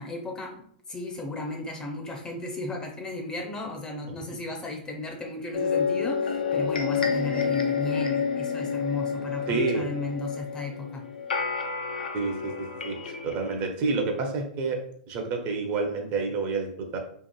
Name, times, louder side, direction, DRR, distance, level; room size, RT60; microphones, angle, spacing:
voice 1, 0.0-11.0, left 2 dB, 15° left, 1 dB, 0.5 m, -35 dB
sound 1, 5.5-13.7, left 6 dB, 80° left, 0.4 m, -29 dB
voice 2, 9.5-9.8 12.1-14.8 15.1-17.0, right 3 dB, 40° right, 3 dB, 0.5 m, -29 dB
2.8 x 2.4 x 2.2 m, 0.63 s
hypercardioid pair, 110°, 5 cm